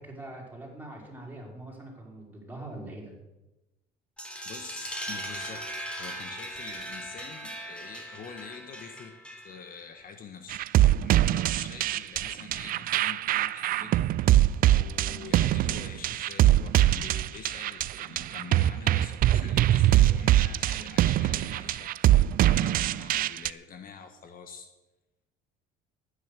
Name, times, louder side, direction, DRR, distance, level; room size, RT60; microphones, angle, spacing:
voice 1, 0.0-3.1, right 2 dB, 10° right, -2 dB, 5.0 m, -43 dB
sound 1, 4.2-9.7, right 1 dB, 5° left, 3.4 m, -39 dB
voice 2, 4.4-5.7 6.0-24.7, left 6 dB, 50° left, 7 dB, 1.4 m, -46 dB
sound 2, 10.5-23.5, right 13 dB, 55° right, 0.4 m, -23 dB
12.0 x 9.9 x 6.8 m, 1.0 s
supercardioid pair, 95°, 18 cm